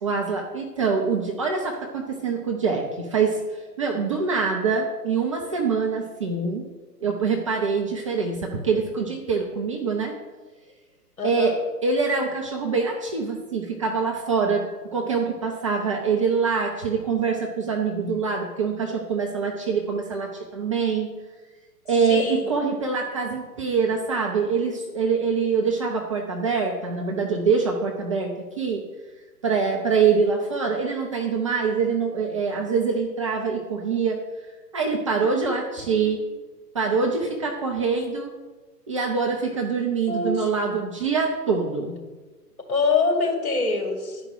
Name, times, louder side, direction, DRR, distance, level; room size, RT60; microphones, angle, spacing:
voice 1, 0.0-3.4 3.8-6.7 7.0-10.1 11.2-11.5 11.8-14.6 14.9-21.1 21.9-28.8 29.4-34.2 34.7-36.2 36.7-38.3 38.9-41.9, right 5 dB, 20° right, 0 dB, 0.6 m, -24 dB
voice 2, 11.2-11.6 22.1-22.5 35.8-36.3 40.1-40.5 42.7-44.2, left 4 dB, 60° left, 1 dB, 2.7 m, -25 dB
11.0 x 5.0 x 6.5 m, 1.3 s
figure-of-eight pair, 125°, 49 cm